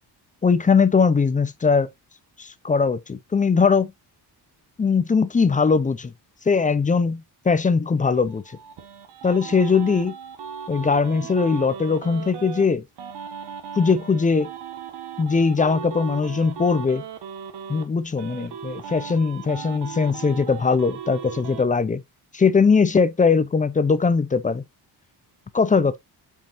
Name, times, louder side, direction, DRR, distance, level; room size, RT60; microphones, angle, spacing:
voice 1, 0.4-1.9 2.4-3.9 4.8-6.1 6.5-8.4 9.2-10.1 10.7-12.8 13.8-14.5 15.2-17.0 17.7-22.0 22.3-24.6 25.5-26.0, left 5 dB, 20° left, 0.5 m, -20 dB
sound 1, 8.3-12.6 13.0-17.9 18.2-21.6, right 8 dB, 70° right, 1.6 m, -37 dB
7.3 x 5.5 x 2.5 m
cardioid pair, 155°, 41 cm